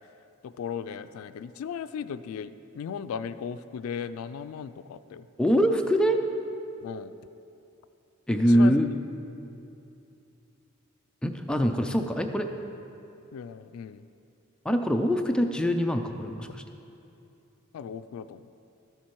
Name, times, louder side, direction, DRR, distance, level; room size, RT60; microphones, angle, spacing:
voice 1, 0.4-5.3 6.8-7.1 8.5-8.8 13.3-14.0 17.7-18.5, left 7 dB, 90° left, 12 dB, 0.3 m, -37 dB
voice 2, 5.4-6.2 8.3-8.9 11.2-12.5 14.6-16.6, equal, 5° left, 4 dB, 0.4 m, -23 dB
13.0 x 7.3 x 4.6 m, 2.7 s
head